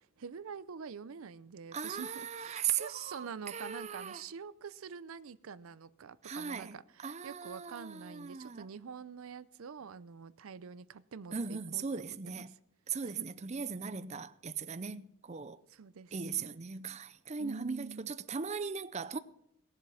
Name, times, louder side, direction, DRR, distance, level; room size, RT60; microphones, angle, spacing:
voice 1, 0.0-12.6 13.0-13.3 15.7-16.6 16.9-17.0 17.4-18.1, right 6 dB, 80° right, 0.5 m, -46 dB
voice 2, 1.7-4.2 6.2-6.8 7.0-8.7 11.3-12.5 12.9-15.6 16.1-19.2, right 6 dB, 30° right, 0.5 m, -38 dB
18.5 x 7.4 x 5.6 m
head